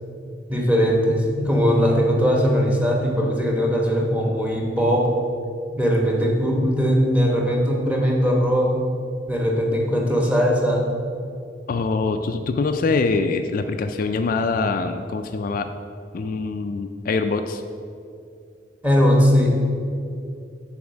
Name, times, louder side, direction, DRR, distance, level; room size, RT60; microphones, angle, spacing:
voice 1, 0.5-5.1 5.8-8.9 9.3-10.8 18.8-19.5, equal, 10° right, 0 dB, 1.0 m, -20 dB
voice 2, 11.7-15.7 16.1-17.6, left 4 dB, 50° left, 7 dB, 0.3 m, -24 dB
7.1 x 4.3 x 6.3 m, 2.5 s
head